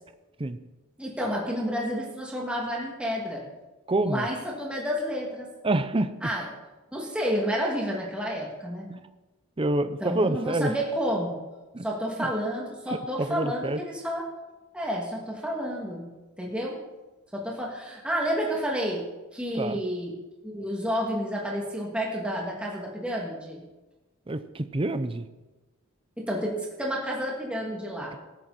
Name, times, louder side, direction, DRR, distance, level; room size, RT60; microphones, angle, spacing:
voice 1, 1.0-3.4 4.0-5.5 6.2-6.5 6.9-8.9 10.0-11.4 11.8-14.2 14.7-16.1 16.4-16.8 17.3-19.0 19.3-20.1 20.4-23.6 26.2-28.2, equal, 5° right, -3 dB, 2.5 m, -30 dB
voice 2, 3.9-4.3 5.6-6.1 8.9-9.0 9.6-10.7 11.7-11.9 12.2-12.3 12.9-13.8 19.5-19.8 24.3-25.3, right 2 dB, 25° right, 10 dB, 0.6 m, -27 dB
18.0 x 14.0 x 4.3 m, 1.1 s
head